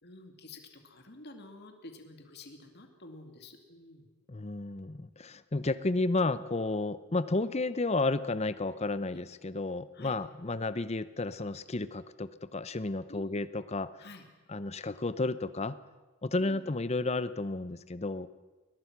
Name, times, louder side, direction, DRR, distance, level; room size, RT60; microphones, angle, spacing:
voice 1, 0.0-4.1 9.1-9.2 9.9-10.1 13.1-13.5 14.0-14.3 16.4-16.7, left 2 dB, 50° left, 5 dB, 2.3 m, -50 dB
voice 2, 4.3-13.9 14.5-15.8 16.2-18.3, left 2 dB, 30° left, 15 dB, 0.7 m, -32 dB
22.0 x 20.0 x 6.0 m, 1.2 s
head